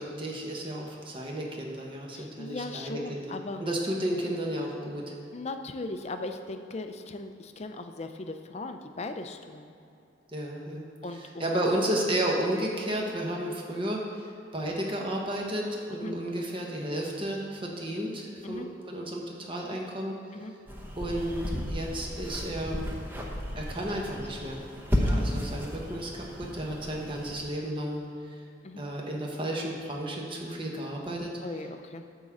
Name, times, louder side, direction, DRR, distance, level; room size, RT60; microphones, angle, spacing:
voice 1, 0.0-3.3 3.6-5.1 10.3-10.9 11.1-20.1 21.0-21.4 21.7-22.9 23.5-24.6 25.0-28.0 28.8-31.3, right 1 dB, 25° right, -1 dB, 1.2 m, -32 dB
voice 2, 2.1-3.6 5.3-9.7 11.0-11.6 15.9-16.1 18.4-18.7 20.3-20.5 25.0-25.3 28.6-28.8 31.4-32.0, left 2 dB, 35° left, 7 dB, 0.5 m, -38 dB
sound 1, 20.7-27.4, equal, 10° right, 0.8 m, -33 dB
10.5 x 3.8 x 7.2 m, 2.6 s
head